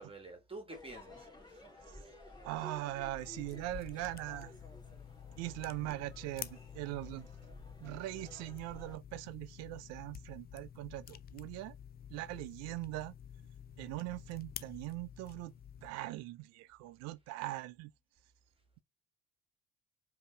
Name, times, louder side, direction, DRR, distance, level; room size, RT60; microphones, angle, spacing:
voice 1, 0.0-2.2, right 2 dB, 20° right, 1.5 m, -50 dB
Crowd / Fireworks, 0.7-9.0, left 1 dB, 15° left, 2.2 m, -54 dB
voice 2, 2.4-4.5 5.4-7.3 7.8-11.8 12.1-13.2 13.8-15.5 15.8-17.9, right 17 dB, 60° right, 0.5 m, -41 dB
sound 1, 3.2-15.9, left 9 dB, 35° left, 0.4 m, -50 dB
5.1 x 2.9 x 2.3 m
hypercardioid pair, 55°, 29 cm